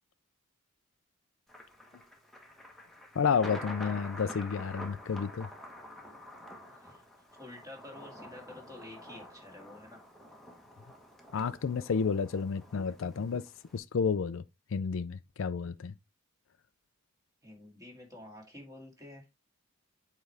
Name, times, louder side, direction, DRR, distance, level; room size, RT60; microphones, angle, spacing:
Thunder, 1.5-13.8, left 1 dB, ahead, 1.1 m, -47 dB
voice 1, 3.2-5.5 11.3-13.4 13.7-14.4 14.7-15.9, left 6 dB, 65° left, 0.4 m, -31 dB
voice 2, 7.4-10.0 17.4-19.3, left 1 dB, 15° right, 2.2 m, -49 dB
7.7 x 4.6 x 3.3 m
head